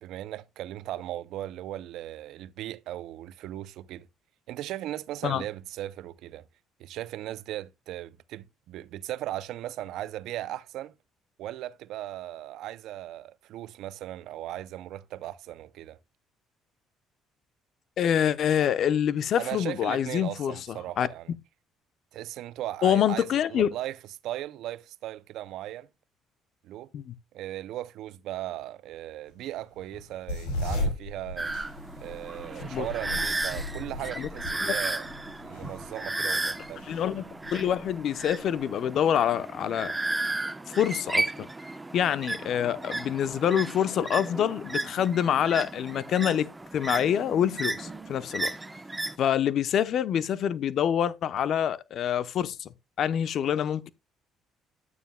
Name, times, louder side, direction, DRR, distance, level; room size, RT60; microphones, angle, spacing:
voice 1, 0.0-4.1 4.5-6.5 6.8-10.9 11.4-16.0 19.4-21.3 22.1-24.0 24.2-25.9 26.6-26.9 27.3-31.5 32.0-35.1 35.4-36.8, right 13 dB, 75° right, 0.5 m, -37 dB
voice 2, 18.0-21.1 22.8-23.7 26.9-27.1 32.7-32.9 34.2-34.3 34.6-34.7 36.9-40.0 40.7-41.5 41.9-46.5 46.7-48.5 49.2-52.7 53.0-53.9, left 9 dB, 60° left, 0.8 m, -26 dB
sound 1, 29.8-38.6, left 1 dB, 85° left, 5.4 m, -36 dB
sound 2, 31.4-49.2, right 2 dB, 15° right, 0.8 m, -34 dB
sound 3, 46.5-49.2 49.5-49.6, right 7 dB, 50° right, 2.2 m, -50 dB
11.0 x 9.0 x 2.2 m
supercardioid pair, 75°, 0 cm